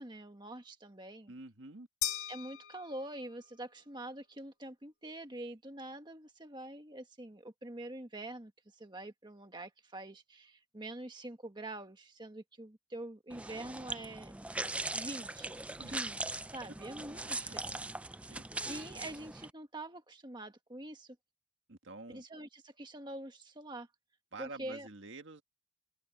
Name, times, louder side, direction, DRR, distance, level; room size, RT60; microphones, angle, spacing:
voice 1, 0.0-1.3 2.3-8.5 8.8-14.3 14.9-15.6 15.9-17.8 18.6-21.2 22.1-23.9 24.4-24.9, right 1 dB, 20° right, 1.5 m, -45 dB
voice 2, 1.3-1.9 15.8-16.0 17.5-17.6 18.2-18.4 21.7-22.3 24.3-25.4, right 3 dB, 60° right, 1.8 m, -48 dB
sound 1, 2.0-3.5, left 12 dB, 80° left, 1.6 m, -39 dB
sound 2, 13.3-19.5, right 2 dB, 5° right, 0.3 m, -40 dB
open air
head